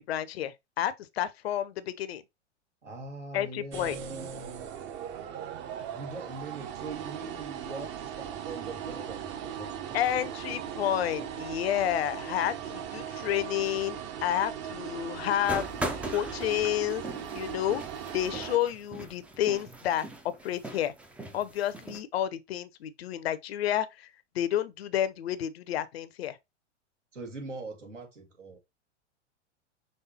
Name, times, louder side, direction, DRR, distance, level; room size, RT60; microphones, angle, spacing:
voice 1, 0.0-2.2 3.3-4.0 9.9-15.7 16.1-17.0 17.3-17.8 18.1-20.1 20.4-20.9 21.3-24.1 24.3-26.4, left 11 dB, 55° left, 0.7 m, -30 dB
voice 2, 2.8-4.8 5.9-10.0 10.8-11.5 27.1-28.6, right 3 dB, 80° right, 2.1 m, -42 dB
sound 1, 3.7-18.6, right 9 dB, 30° right, 0.8 m, -39 dB
Knock Door and Footsteps, 15.5-22.0, right 1 dB, 5° right, 0.4 m, -40 dB
5.5 x 3.3 x 2.8 m
figure-of-eight pair, 100°, 36 cm